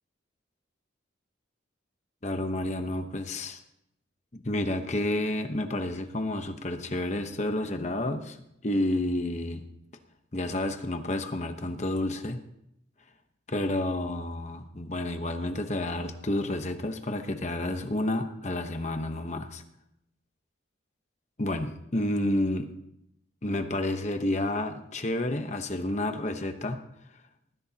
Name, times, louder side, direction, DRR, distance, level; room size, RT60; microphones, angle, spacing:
voice 1, 2.2-3.6 4.3-8.4 8.6-9.6 10.3-12.4 13.5-19.6 21.4-22.7 23.4-26.8, left 1 dB, 35° left, 6 dB, 1.0 m, -30 dB
20.5 x 15.0 x 2.9 m, 0.78 s
head